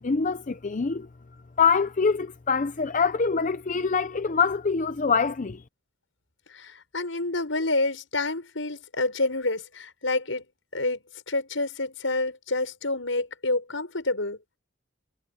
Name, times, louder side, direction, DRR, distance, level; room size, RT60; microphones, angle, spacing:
voice 1, 0.0-1.1 1.6-5.6, left 5 dB, 40° left, 0.6 m, -24 dB
voice 2, 6.5-10.5 10.7-14.4, left 2 dB, 75° left, 6.0 m, -28 dB
head